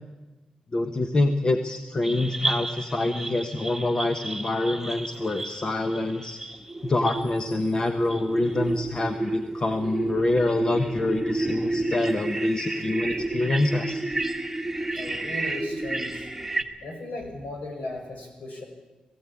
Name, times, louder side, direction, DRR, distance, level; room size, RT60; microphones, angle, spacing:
voice 1, 0.7-6.4 6.8-14.0, left 2 dB, 35° left, 6 dB, 1.2 m, -26 dB
sound 1, 2.0-16.6, right 2 dB, 5° right, 1.6 m, -31 dB
voice 2, 14.9-16.3 16.8-18.6, left 2 dB, 65° left, 2 dB, 6.3 m, -36 dB
20.5 x 16.0 x 8.5 m, 1.2 s
wide cardioid pair, 130°, 3 cm